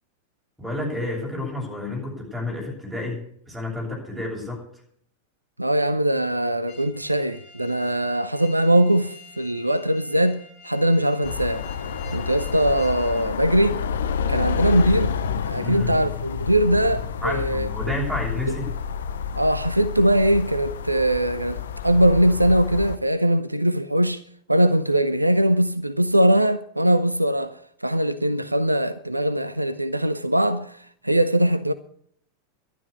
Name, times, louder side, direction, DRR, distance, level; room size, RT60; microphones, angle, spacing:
voice 1, 0.6-3.2 3.5-4.6 15.6-16.0 17.2-18.7, left 2 dB, 5° right, 7.6 m, -30 dB
voice 2, 5.6-11.7 12.1-13.8 14.3-15.1 15.5-17.7 18.5-18.6 19.3-24.2 24.5-31.7, right 1 dB, 85° right, 0.7 m, -21 dB
sound 1, 6.7-13.3, left 6 dB, 45° left, 6.0 m, -48 dB
sound 2, 11.2-23.0, left 7 dB, 65° left, 0.8 m, -29 dB
12.0 x 11.0 x 8.3 m
figure-of-eight pair, 90°, 0 cm